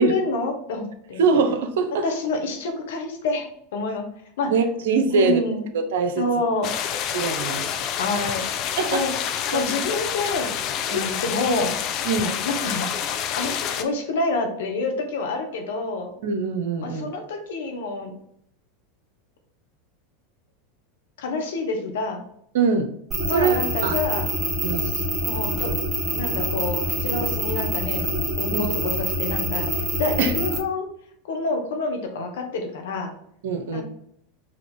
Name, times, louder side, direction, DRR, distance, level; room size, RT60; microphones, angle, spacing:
voice 1, 0.0-1.2 2.0-4.1 4.4-4.5 5.1-5.7 6.2-6.7 8.0-8.4 8.9-9.1 9.5-10.5 10.9-11.8 12.4-12.9 13.4-16.2 16.8-18.1 21.2-22.3 23.3-24.3 24.8-25.7 26.1-28.0 28.4-29.7 30.0-30.9 31.2-33.1 33.7-33.8, left 3 dB, 75° left, 4 dB, 1.0 m, -27 dB
voice 2, 1.2-2.0 4.5-5.4 5.7-6.3 7.1-7.7 8.8-9.0 9.5-9.6 10.9-11.2 12.1-12.3 16.2-17.1 22.5-22.9 23.3-24.0 24.6-24.9 28.5-28.7 30.2-30.3 33.4-33.8, right 5 dB, 75° right, 7 dB, 0.6 m, -23 dB
sound 1, 6.6-13.8, left 9 dB, 50° left, 0.5 m, -28 dB
sound 2, 23.1-30.6, right 1 dB, 25° right, 1.6 m, -26 dB
5.0 x 2.8 x 3.4 m, 0.71 s
hypercardioid pair, 95°, 0 cm